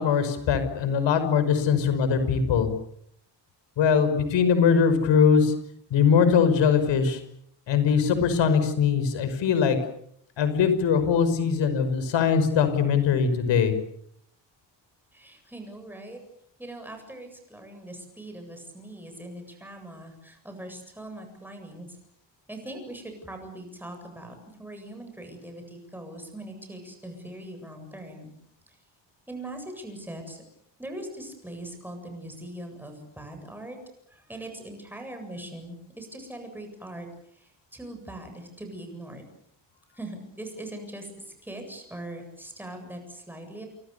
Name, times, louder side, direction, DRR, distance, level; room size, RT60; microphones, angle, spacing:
voice 1, 0.0-2.7 3.8-5.5 5.9-7.2 7.7-9.8 10.4-13.7, left 6 dB, 85° left, 10 dB, 5.8 m, -21 dB
voice 2, 15.1-16.2 16.6-22.0 22.5-28.3 28.7-28.8 29.3-30.4 30.8-33.8 34.1-39.3 39.9-43.7, right 1 dB, 5° right, 4 dB, 7.8 m, -41 dB
29.5 x 28.5 x 7.0 m, 0.69 s
cardioid pair, 175°, 43 cm